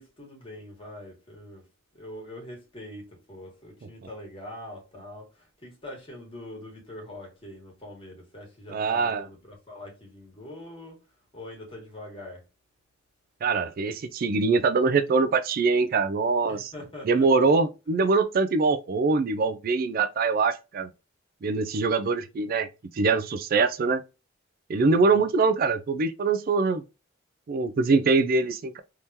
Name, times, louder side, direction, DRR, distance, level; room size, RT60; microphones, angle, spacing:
voice 1, 0.0-1.7 1.9-11.0 11.3-12.4 16.5-17.5 24.7-25.3, left 1 dB, 30° left, 1.8 m, -43 dB
voice 2, 8.7-9.2 13.4-16.7 17.1-20.9 21.4-22.7 22.9-24.0 24.7-26.8 27.5-28.8, right 4 dB, 50° right, 0.4 m, -23 dB
3.6 x 2.8 x 2.7 m
head